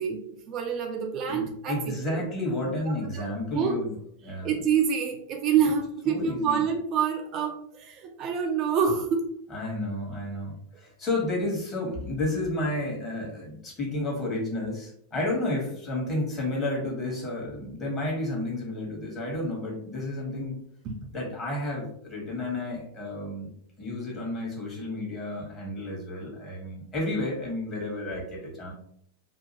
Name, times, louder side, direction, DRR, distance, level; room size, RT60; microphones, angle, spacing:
voice 1, 0.0-1.8 2.1-2.2 3.1-3.8 4.4-9.3 20.8-21.0, right 7 dB, 35° right, 3 dB, 0.3 m, -27 dB
voice 2, 1.3-4.0 4.2-4.5 6.0-6.6 9.5-20.6 21.1-23.5 23.8-28.7, left 1 dB, 25° left, -2 dB, 1.2 m, -31 dB
2.7 x 2.4 x 2.7 m, 0.68 s
figure-of-eight pair, 90°, 0 cm